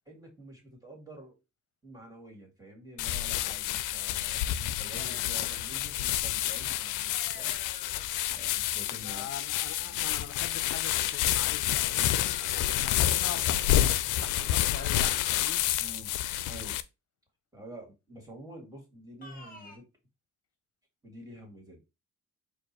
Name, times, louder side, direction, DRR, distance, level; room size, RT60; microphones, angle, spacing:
voice 1, 0.1-1.4 1.8-7.6 8.3-9.3 9.8-10.1 15.8-16.1 16.5-16.8 17.5-19.9 21.0-21.9, right 1 dB, 10° right, 2.2 m, -48 dB
sound 1, 3.0-16.8, left 13 dB, 85° left, 0.5 m, -29 dB
sound 2, 4.9-6.0 7.1-8.4 12.0-13.4 14.8-16.0 19.2-19.8, left 2 dB, 30° left, 1.6 m, -50 dB
voice 2, 9.0-15.6, left 8 dB, 50° left, 0.9 m, -43 dB
4.5 x 2.5 x 4.3 m
cardioid pair, 90°, 30 cm